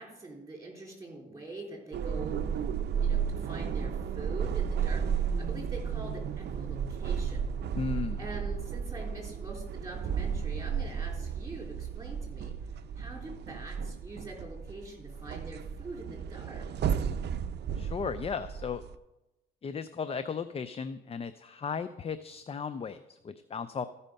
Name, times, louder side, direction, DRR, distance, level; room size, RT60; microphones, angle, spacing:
voice 1, 0.0-2.4 3.0-7.5 8.2-12.5 13.0-16.6, right 2 dB, 15° right, -1 dB, 3.7 m, -44 dB
sound 1, 1.9-19.0, right 7 dB, 60° right, 0.6 m, -33 dB
voice 2, 7.8-8.2 17.8-18.8 19.6-23.9, left 6 dB, 30° left, 12 dB, 0.4 m, -35 dB
14.0 x 5.5 x 5.2 m, 0.99 s
cardioid pair, 90°, 20 cm